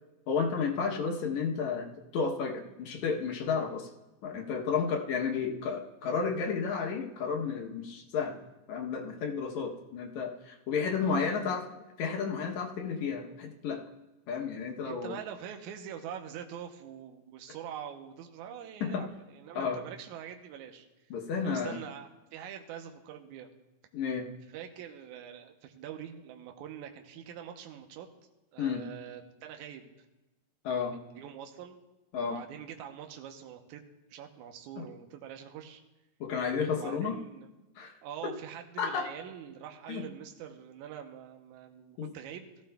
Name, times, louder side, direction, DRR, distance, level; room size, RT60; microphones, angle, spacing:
voice 1, 0.3-3.9 4.2-8.4 8.7-13.8 14.3-15.2 18.8-19.0 19.6-19.8 21.1-21.8 23.9-24.3 28.6-28.8 30.6-31.0 32.1-32.4 34.8-34.9 36.2-37.2 37.8-37.9 38.2-38.3 38.8-39.1 39.9-40.1 42.0-42.1, left 5 dB, 70° left, 1 dB, 2.2 m, -32 dB
voice 2, 14.8-20.9 21.4-23.5 24.5-28.1 28.5-29.9 30.8-31.8 32.1-33.8 34.1-35.8 36.8-37.5 38.0-42.5, right 9 dB, 75° right, 4 dB, 2.2 m, -44 dB
17.0 x 14.5 x 2.3 m, 1.0 s
omnidirectional pair, 3.6 m